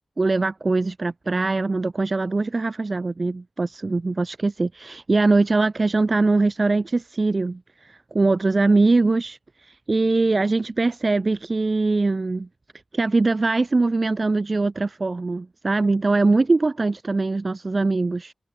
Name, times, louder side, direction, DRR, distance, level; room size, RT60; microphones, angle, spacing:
voice 1, 0.2-12.5 12.9-18.3, right 3 dB, 30° right, 0.7 m, -22 dB
wide cardioid pair, 135°, 0 cm